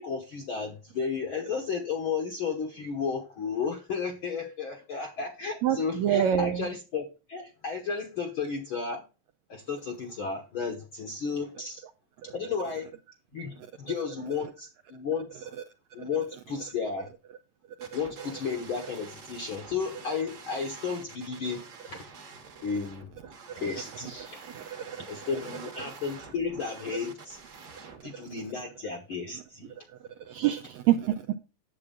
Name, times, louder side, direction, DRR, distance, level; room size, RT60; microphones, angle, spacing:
voice 1, 0.0-9.0 9.5-11.8 12.3-12.9 13.3-15.5 15.9-17.1 17.9-21.6 21.9-22.0 22.6-23.1 23.6-24.5 25.0-27.4 28.0-29.7, left 5 dB, 60° left, 1.3 m, -33 dB
voice 2, 5.6-6.7 12.3-12.4 17.8-17.9 24.5-25.0 30.3-31.3, right 10 dB, 80° right, 1.7 m, -26 dB
sound 1, 17.8-28.0, right 5 dB, 45° right, 1.4 m, -47 dB
9.6 x 7.6 x 3.7 m
omnidirectional pair, 3.8 m